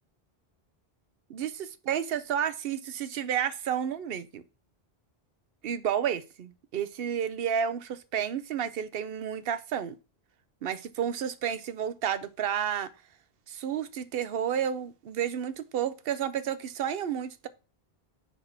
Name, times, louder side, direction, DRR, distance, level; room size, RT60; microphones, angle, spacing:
voice 1, 1.3-4.4 5.6-10.0 10.6-12.9 13.5-17.5, right 8 dB, 70° right, 0.9 m, -31 dB
5.0 x 4.3 x 5.7 m
omnidirectional pair, 1.0 m